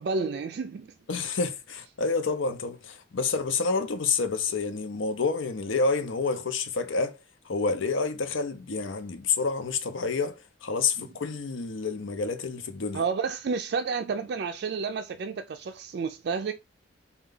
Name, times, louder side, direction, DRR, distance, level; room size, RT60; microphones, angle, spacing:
voice 1, 0.0-0.9 11.0-11.1 12.9-16.5, right 5 dB, 55° right, 0.3 m, -30 dB
voice 2, 1.1-7.2 7.5-13.0, left 4 dB, 85° left, 0.6 m, -28 dB
4.4 x 2.3 x 3.7 m
head